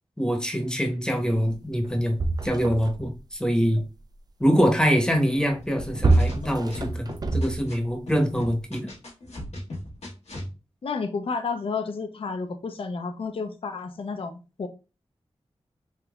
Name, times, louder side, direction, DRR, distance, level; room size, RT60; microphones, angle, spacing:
voice 1, 0.2-2.2 2.4-3.8 4.4-8.9, equal, 5° left, 4 dB, 0.8 m, -24 dB
sound 1, 1.5-1.6 1.8-3.2 5.5-7.9 8.6-8.7, right 2 dB, 35° right, 0.3 m, -25 dB
sound 2, 5.8-7.7 8.1-10.5, left 1 dB, 80° left, 1.0 m, -37 dB
voice 2, 10.8-14.7, left 4 dB, 55° left, 7 dB, 0.4 m, -31 dB
3.4 x 2.9 x 2.3 m, 0.31 s
wide cardioid pair, 60°, 11 cm